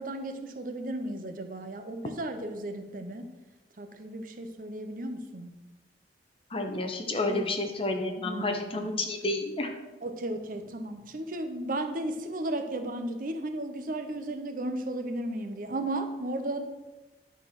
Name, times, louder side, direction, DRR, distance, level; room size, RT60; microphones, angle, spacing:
voice 1, 0.0-3.3 3.8-5.6 7.3-7.5 8.2-8.9 10.0-16.6, right 1 dB, 50° right, 6 dB, 0.7 m, -34 dB
voice 2, 6.5-9.7, left 2 dB, 30° left, 4 dB, 1.0 m, -30 dB
10.5 x 4.1 x 6.0 m, 1.1 s
head